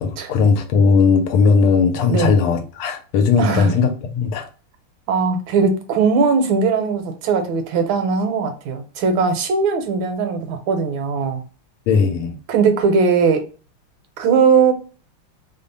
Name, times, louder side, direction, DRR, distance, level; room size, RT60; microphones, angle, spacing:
voice 1, 0.0-4.5 11.9-12.4, left 5 dB, 85° left, 1.5 m, -17 dB
voice 2, 3.4-3.7 5.1-11.4 12.5-13.4 14.2-14.7, right 5 dB, 75° right, 1.4 m, -19 dB
3.5 x 2.0 x 3.9 m
omnidirectional pair, 2.4 m